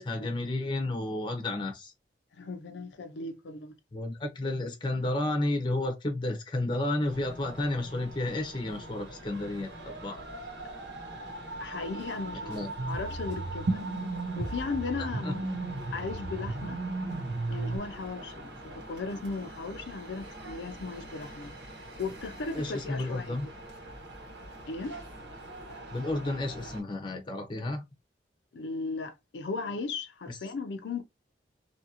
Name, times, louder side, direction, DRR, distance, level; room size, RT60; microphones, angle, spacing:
voice 1, 0.0-1.9 3.9-10.2 12.5-12.7 15.2-15.3 22.5-23.5 25.9-27.8, left 2 dB, 25° left, 0.6 m, -31 dB
voice 2, 2.3-3.7 11.6-13.9 14.4-15.5 15.9-16.8 17.5-21.5 22.0-23.5 24.7-25.0 28.5-31.0, left 4 dB, 80° left, 0.5 m, -37 dB
sound 1, 7.0-26.8, right 1 dB, 85° right, 1.3 m, -43 dB
sound 2, 12.8-17.8, right 2 dB, 60° right, 0.6 m, -34 dB
2.8 x 2.5 x 2.7 m
head